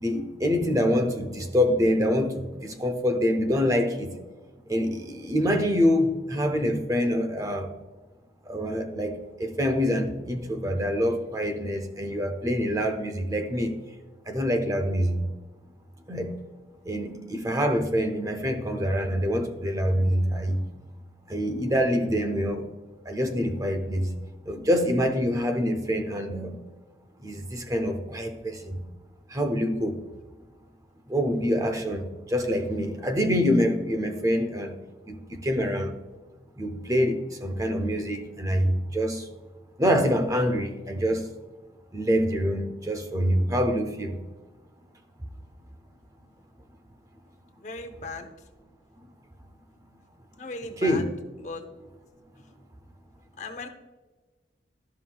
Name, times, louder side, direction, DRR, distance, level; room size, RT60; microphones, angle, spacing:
voice 1, 0.0-4.1 4.7-7.7 8.5-13.8 14.3-15.2 16.1-16.4 16.9-20.6 21.3-22.7 23.0-24.1 24.5-26.6 27.2-28.8 29.3-30.0 31.1-34.7 35.1-35.9 36.6-39.3 39.8-41.3 41.9-44.2 50.8-51.1, equal, 20° right, 5 dB, 0.6 m, -26 dB
voice 2, 47.6-48.3 50.4-51.0 51.4-51.6 53.4-53.7, left 3 dB, 40° left, 6 dB, 0.8 m, -37 dB
12.5 x 5.6 x 2.3 m, 1.3 s
head